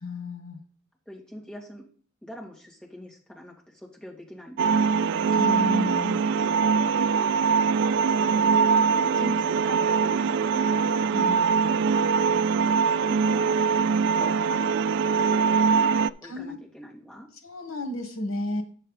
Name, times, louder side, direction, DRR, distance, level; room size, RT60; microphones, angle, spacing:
voice 1, 0.0-0.6 5.3-6.6 11.1-11.4 16.2-16.6 17.4-18.6, left 2 dB, 75° left, 6 dB, 1.4 m, -33 dB
voice 2, 1.1-1.8 2.2-5.0 8.2-8.6 8.9-10.9 11.8-12.1 13.1-13.7 14.1-15.5 16.0-17.3, left 1 dB, 5° left, -2 dB, 2.2 m, -42 dB
sound 1, 4.6-16.1, right 5 dB, 60° right, 0.3 m, -22 dB
9.1 x 6.6 x 4.0 m, 0.43 s
head